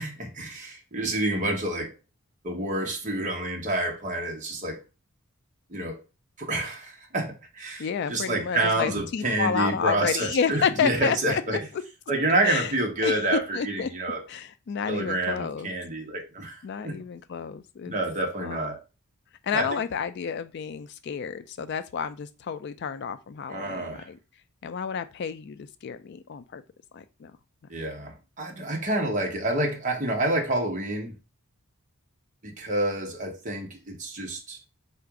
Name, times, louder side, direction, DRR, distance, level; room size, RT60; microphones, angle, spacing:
voice 1, 0.0-1.9 2.4-4.8 5.7-6.0 6.4-11.6 12.1-14.2 14.9-17.0 17.9-18.8 19.5-19.7 23.5-24.1 27.7-31.1 32.4-34.6, right 2 dB, 35° right, 0.9 m, -28 dB
voice 2, 7.8-11.4 12.4-12.7 13.0-13.1 13.5-13.9 14.3-15.7 16.6-17.9 18.4-18.7 19.4-24.2 24.6-26.6 26.9-27.3, left 7 dB, 50° left, 0.3 m, -30 dB
3.8 x 2.5 x 4.6 m
head